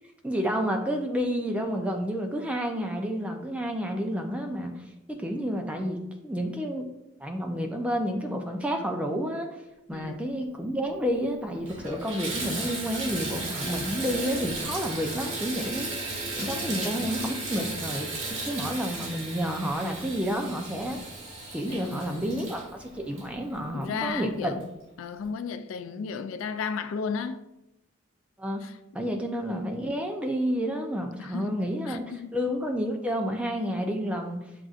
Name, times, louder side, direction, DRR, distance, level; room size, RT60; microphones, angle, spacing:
voice 1, 0.2-6.9 7.2-9.6 9.9-15.9 16.4-18.1 18.4-21.0 21.5-24.5 28.4-28.6 28.9-32.0 32.3-34.4, equal, 5° right, 0.4 m, -30 dB
voice 2, 9.9-10.3 16.4-16.8 21.7-22.6 23.7-24.6 25.0-27.4 28.6-28.7 31.2-31.6 31.9-32.4, left 5 dB, 80° left, 0.3 m, -34 dB
Water tap faucet / Bathtub (filling or washing), 11.0-11.1 11.5-23.9 24.6-24.7 25.2-25.3, right 2 dB, 85° right, 1.0 m, -35 dB
7.5 x 2.5 x 2.4 m
head